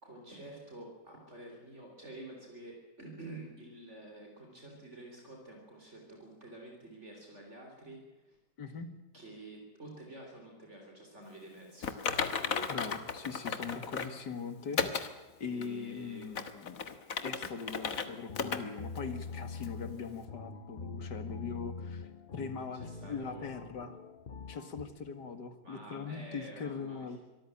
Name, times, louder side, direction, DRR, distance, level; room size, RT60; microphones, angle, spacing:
voice 1, 0.0-8.4 9.1-12.0 15.4-16.4 22.7-23.4 25.6-27.2, right 1 dB, 40° right, 1 dB, 4.1 m, -49 dB
Typing, 11.8-14.2 14.8-15.1 15.6-15.7 16.2-18.1 18.3-18.6 19.0-19.1 19.6-19.7, left 5 dB, 55° left, 1.8 m, -34 dB
voice 2, 12.7-15.0 15.4-16.8 17.2-24.0 24.5-27.2, left 5 dB, 85° left, 10 dB, 2.6 m, -41 dB
sound 1, 17.9-24.8, left 4 dB, 40° left, 1.1 m, -44 dB
24.5 x 14.0 x 8.8 m, 1.1 s
omnidirectional pair, 1.8 m